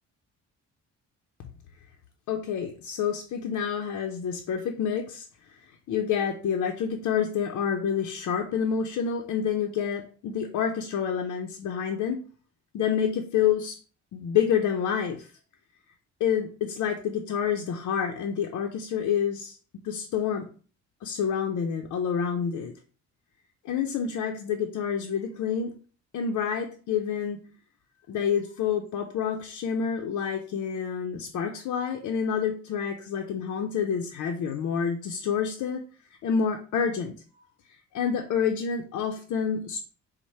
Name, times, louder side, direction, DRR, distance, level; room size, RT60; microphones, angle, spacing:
voice 1, 2.3-5.3 5.9-12.2 12.7-13.8 14.1-15.3 16.2-19.6 19.8-20.5 21.0-22.7 23.6-25.7 26.1-27.4 28.1-35.8 36.2-37.1 37.7-39.8, left 7 dB, 70° left, 2 dB, 0.6 m, -28 dB
4.5 x 2.1 x 4.1 m, 0.40 s
cardioid pair, 90°, 30 cm